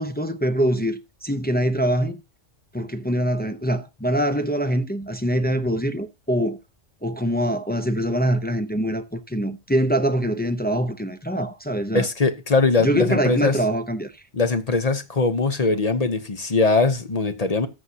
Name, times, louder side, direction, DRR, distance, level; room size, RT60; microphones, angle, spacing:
voice 1, 0.0-2.2 2.7-6.6 7.0-12.1 12.8-14.1, equal, 15° left, 0.3 m, -24 dB
voice 2, 11.9-13.6 14.3-17.7, left 3 dB, 40° left, 0.8 m, -21 dB
14.0 x 8.0 x 2.8 m
omnidirectional pair, 1.2 m